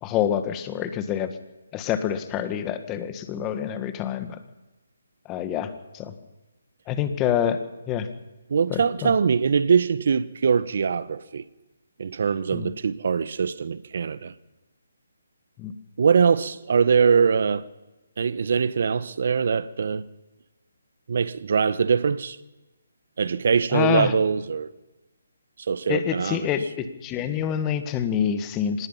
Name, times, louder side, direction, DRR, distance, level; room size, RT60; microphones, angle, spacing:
voice 1, 0.0-1.3 1.7-4.4 5.3-6.1 6.9-7.6 7.9-8.1 8.7-9.1 12.5-12.7 15.6-15.7 23.7-24.1 25.9-28.9, left 9 dB, 15° left, 1.6 m, -27 dB
voice 2, 8.5-11.4 12.0-14.3 16.0-17.6 18.2-20.0 21.1-22.4 23.2-24.7 25.7-26.5, right 6 dB, 55° right, 1.1 m, -22 dB
25.5 x 19.5 x 5.7 m
hypercardioid pair, 160°, 0 cm